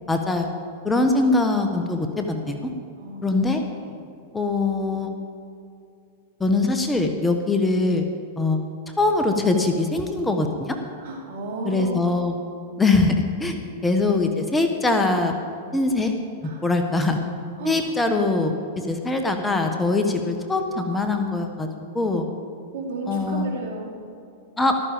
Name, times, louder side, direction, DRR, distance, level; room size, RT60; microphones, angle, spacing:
voice 1, 0.1-0.5 0.8-2.7 3.2-3.6 4.3-5.1 6.4-8.1 8.4-8.6 9.0-10.8 11.6-12.3 12.8-13.6 13.8-15.4 15.7-16.1 16.4-17.2 17.6-21.7 21.9-22.3 23.1-23.5 24.6-24.8, left 3 dB, 10° left, 4 dB, 1.2 m, -22 dB
voice 2, 3.0-3.4 3.8-3.9 11.0-12.0 13.5-13.6 16.4-16.6 17.6-17.8 22.7-24.0, right 3 dB, 65° right, -1 dB, 3.9 m, -33 dB
14.0 x 13.0 x 5.1 m, 2.5 s
hypercardioid pair, 115°, 0 cm